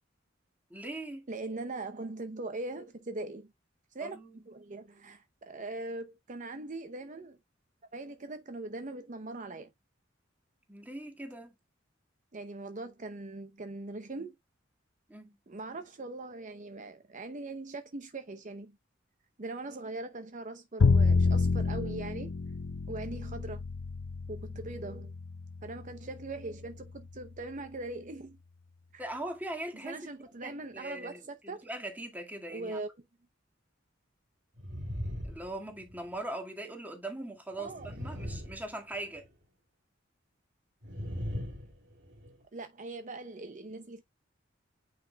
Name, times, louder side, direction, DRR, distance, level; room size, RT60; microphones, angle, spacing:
voice 1, 0.7-1.3 4.0-4.5 10.7-11.5 15.1-15.4 29.0-29.9 30.4-32.8 35.2-39.3, right 1 dB, 10° right, 2.0 m, -41 dB
voice 2, 1.3-3.5 3.9-4.2 4.5-7.4 7.9-9.7 12.3-14.4 15.5-18.8 19.4-22.3 22.9-23.6 24.3-25.1 25.6-28.4 28.9-29.0 29.8-31.7 32.5-32.9 37.6-37.9 42.5-44.0, right 2 dB, 40° right, 0.7 m, -41 dB
Bowed string instrument, 20.8-26.9, left 4 dB, 90° left, 0.6 m, -29 dB
sound 1, 34.6-36.1 37.5-39.3 40.8-42.3, equal, 65° right, 2.4 m, -39 dB
9.4 x 5.0 x 2.3 m
head